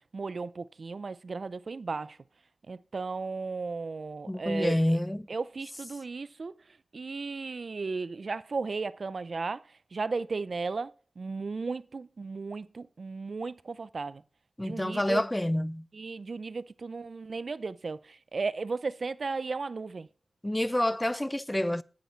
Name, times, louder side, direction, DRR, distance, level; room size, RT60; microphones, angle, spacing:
voice 1, 0.1-2.2 2.7-5.0 5.3-6.5 6.9-9.6 9.9-14.2 14.6-15.2 15.9-20.1, right 4 dB, 65° right, 0.4 m, -35 dB
voice 2, 4.3-5.3 14.6-15.8 20.4-21.8, left 1 dB, 15° left, 0.5 m, -28 dB
10.5 x 8.2 x 4.4 m
cardioid pair, 55°, 0 cm